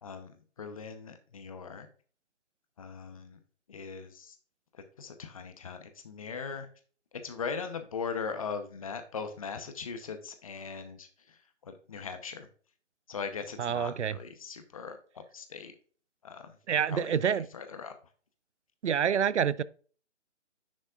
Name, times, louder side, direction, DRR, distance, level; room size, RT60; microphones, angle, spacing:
voice 1, 0.0-0.3 0.6-1.9 2.8-3.4 3.7-4.3 5.0-6.7 7.2-12.5 13.1-15.7 16.2-16.6 16.9-17.9, left 5 dB, 30° left, 0.8 m, -40 dB
voice 2, 13.6-14.2 16.7-17.5 18.8-19.6, right 8 dB, 70° right, 0.6 m, -27 dB
9.9 x 6.2 x 2.4 m
figure-of-eight pair, 155°, 36 cm